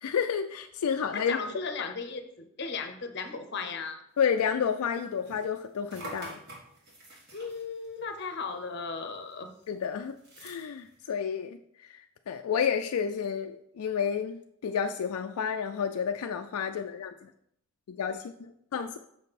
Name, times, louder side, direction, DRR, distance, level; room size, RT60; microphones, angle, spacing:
voice 1, 0.0-1.4 1.9-2.0 4.2-6.4 9.7-10.1 10.4-12.0 12.3-17.3 17.9-18.3 18.7-19.0, left 7 dB, 80° left, 6 dB, 0.4 m, -30 dB
voice 2, 1.1-4.0 7.3-9.5, left 4 dB, 50° left, 7 dB, 0.7 m, -36 dB
sound 1, 4.4-9.0 9.3-11.0, right 1 dB, 45° right, 1.7 m, -48 dB
6.3 x 5.3 x 4.1 m, 0.73 s
head